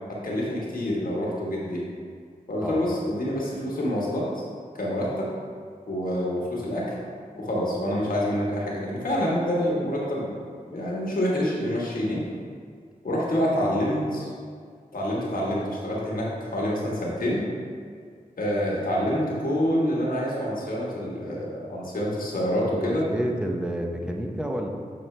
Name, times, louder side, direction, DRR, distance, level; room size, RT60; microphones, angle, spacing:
voice 1, 0.1-1.9 2.5-4.4 4.7-5.3 5.9-7.0 7.4-10.3 10.7-12.3 13.0-14.3 14.9-17.4 18.4-23.0, equal, 70° left, -5 dB, 1.4 m, -27 dB
voice 2, 22.7-24.7, equal, 5° right, 1 dB, 0.7 m, -29 dB
7.1 x 4.3 x 3.2 m, 2.1 s
cardioid pair, 50°, 15 cm